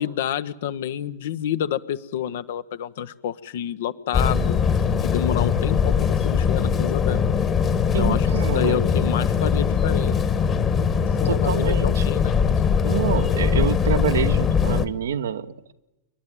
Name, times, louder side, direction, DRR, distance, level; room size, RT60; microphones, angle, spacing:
voice 1, 0.0-4.6 5.0-7.3 8.0-10.2 11.2-12.6, left 10 dB, 55° left, 14 dB, 0.8 m, -29 dB
sound 1, 4.1-14.9, left 6 dB, 25° left, 1.4 m, -21 dB
voice 2, 7.9-8.8 11.2-12.0 12.8-15.7, right 8 dB, 65° right, 10 dB, 1.0 m, -27 dB
28.5 x 12.0 x 9.0 m, 1.0 s
figure-of-eight pair, 90°, 0 cm